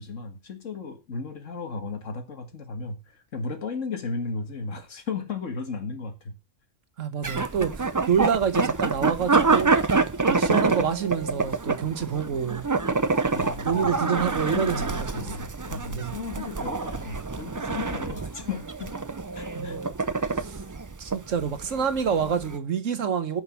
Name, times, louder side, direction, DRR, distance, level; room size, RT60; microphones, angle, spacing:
voice 1, 0.0-6.3 13.3-18.9 19.3-19.8, left 4 dB, 85° left, 2.1 m, -35 dB
voice 2, 7.0-9.8 10.3-12.6 13.6-15.0 15.9-16.1 19.5-19.8 20.4-20.6 21.0-23.4, right 7 dB, 90° right, 1.6 m, -27 dB
sound 1, 7.2-22.6, right 4 dB, 30° right, 0.3 m, -27 dB
10.0 x 5.9 x 5.8 m
omnidirectional pair, 1.3 m